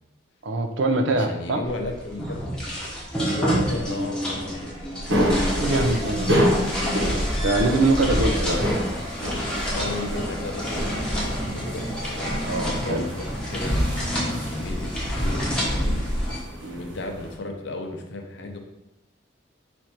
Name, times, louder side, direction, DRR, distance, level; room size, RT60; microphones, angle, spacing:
voice 1, 0.4-1.6 5.5-6.5 7.4-8.6 12.5-13.1 16.6-16.9, right 2 dB, 70° right, 6 dB, 0.5 m, -23 dB
voice 2, 1.1-2.4 3.3-4.7 8.1-8.4 9.7-12.4 12.6-13.2 13.5-13.9 14.5-16.0 16.8-18.6, left 2 dB, 65° left, 3 dB, 0.6 m, -34 dB
sound 1, 1.6-16.4, equal, 5° left, 0.9 m, -28 dB
sound 2, 5.1-17.3, equal, 90° right, 1.2 m, -29 dB
4.2 x 2.6 x 4.5 m, 0.96 s
head